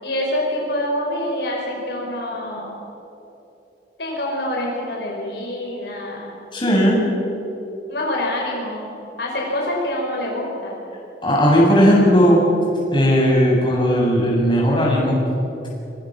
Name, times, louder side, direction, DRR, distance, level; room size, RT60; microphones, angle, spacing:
voice 1, 0.0-2.7 4.0-6.4 7.9-8.9 9.2-10.8, left 1 dB, 65° left, -2 dB, 5.2 m, -26 dB
voice 2, 6.5-7.0 11.2-12.4 12.9-15.2, equal, 25° left, -3 dB, 7.5 m, -16 dB
26.0 x 25.5 x 6.3 m, 3.0 s
head